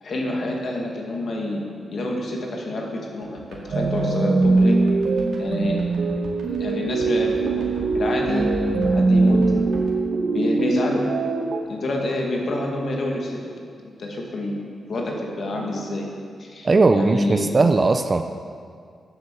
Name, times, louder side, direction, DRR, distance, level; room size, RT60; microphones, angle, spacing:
voice 1, 0.0-1.6 1.9-4.8 5.4-5.8 6.5-7.6 7.9-9.6 10.3-11.1 11.7-13.4 13.8-14.6 14.9-16.1 16.4-16.7 16.9-17.6, left 1 dB, 45° left, 0 dB, 1.8 m, -27 dB
sound 1, 3.2-9.9, right 2 dB, 80° right, 2.3 m, -37 dB
sound 2, 3.7-11.6, right 3 dB, 55° right, 0.9 m, -21 dB
voice 2, 16.6-18.2, right 3 dB, 25° right, 8 dB, 0.4 m, -18 dB
11.0 x 7.8 x 7.2 m, 2.2 s
wide cardioid pair, 175°, 0 cm